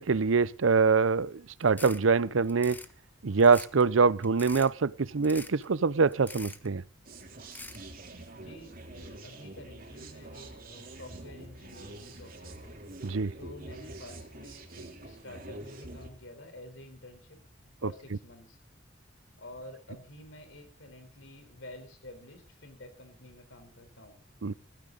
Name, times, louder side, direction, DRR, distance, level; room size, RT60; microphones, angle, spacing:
voice 1, 0.0-2.8 3.2-6.8 13.0-13.3 17.8-17.9 24.4-24.5, right 4 dB, 85° right, 0.6 m, -24 dB
sound 1, 1.6-2.0 2.4-2.9 3.4-3.8 4.2-4.7 5.2-5.6 6.1-6.7 7.4-7.8, left 2 dB, 10° left, 1.2 m, -44 dB
sound 2, 7.0-16.1, right 2 dB, 45° right, 3.3 m, -46 dB
voice 2, 8.4-12.8 13.4-17.4 17.6-18.6 19.4-24.2, left 1 dB, 70° left, 4.1 m, -49 dB
16.5 x 15.0 x 4.0 m
head